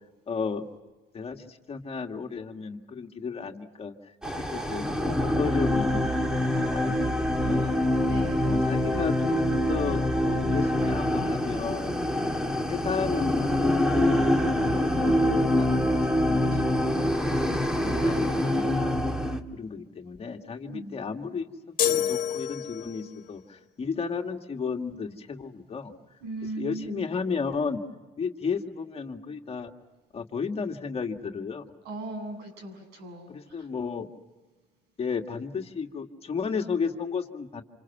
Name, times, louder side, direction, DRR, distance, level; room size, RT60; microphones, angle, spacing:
voice 1, 0.3-0.7 1.1-4.1 4.5-7.8 8.4-11.9 12.6-14.3 14.6-17.2 17.8-19.1 19.5-25.9 26.4-27.8 28.2-29.7 30.1-31.7 33.3-34.1 35.0-37.6, left 5 dB, 35° left, 4 dB, 2.1 m, -33 dB
sound 1, 4.2-19.4, left 1 dB, 5° right, 1.8 m, -25 dB
voice 2, 8.0-8.4 20.7-20.9 26.2-27.0 31.8-33.3, right 2 dB, 80° right, 5 dB, 7.7 m, -37 dB
sound 2, 21.8-23.1, left 9 dB, 55° left, 1.8 m, -27 dB
28.0 x 27.5 x 6.0 m, 1.2 s
cardioid pair, 110°, 17 cm